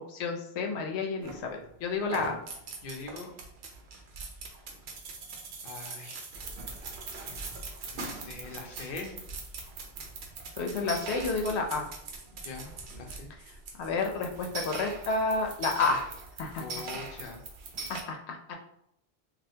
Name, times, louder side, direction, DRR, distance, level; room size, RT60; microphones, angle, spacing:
voice 1, 0.1-2.4 10.6-11.9 13.8-16.0 16.4-16.8 17.9-18.5, left 3 dB, 90° left, 3 dB, 0.8 m, -30 dB
sound 1, 1.2-1.7 2.0-18.0, right 4 dB, 80° right, 0.9 m, -41 dB
voice 2, 2.8-3.3 5.6-6.2 7.9-9.1 12.4-13.3 16.6-17.4, left 4 dB, 60° left, 2 dB, 0.7 m, -42 dB
3.2 x 2.4 x 2.7 m, 0.75 s
omnidirectional pair, 1.1 m